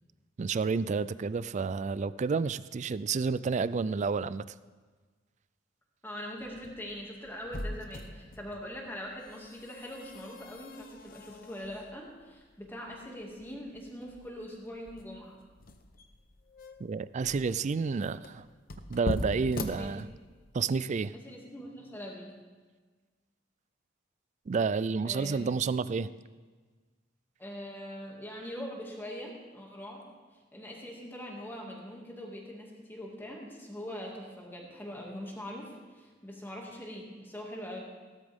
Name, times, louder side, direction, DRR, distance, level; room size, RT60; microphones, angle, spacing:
voice 1, 0.4-4.5 16.8-18.4 18.9-20.1 20.5-21.1 24.5-26.1, right 5 dB, 40° right, 17 dB, 0.3 m, -30 dB
voice 2, 6.0-15.4 19.7-19.9 21.1-22.4 25.0-25.5 27.4-30.0 30.5-37.8, equal, 10° left, -2 dB, 2.3 m, -42 dB
sound 1, 6.4-20.6, left 2 dB, 50° left, 0.9 m, -42 dB
16.5 x 13.0 x 3.6 m, 1.4 s
head